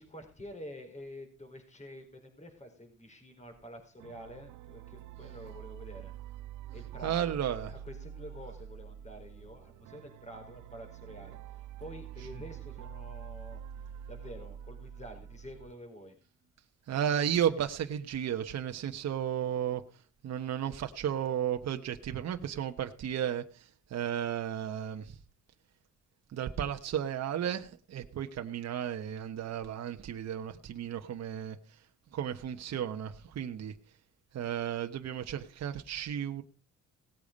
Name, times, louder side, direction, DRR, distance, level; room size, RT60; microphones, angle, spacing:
voice 1, 0.0-6.1 6.7-16.2, equal, 25° left, 4 dB, 4.5 m, -48 dB
sound 1, 4.0-15.7, right 9 dB, 80° right, 0.8 m, -46 dB
voice 2, 7.0-7.7 16.9-19.8 20.2-25.2 26.3-31.6 32.1-33.7 34.3-36.4, right 9 dB, 60° right, 6 dB, 1.1 m, -33 dB
18.0 x 8.4 x 5.2 m, 0.36 s
cardioid pair, 90°, 30 cm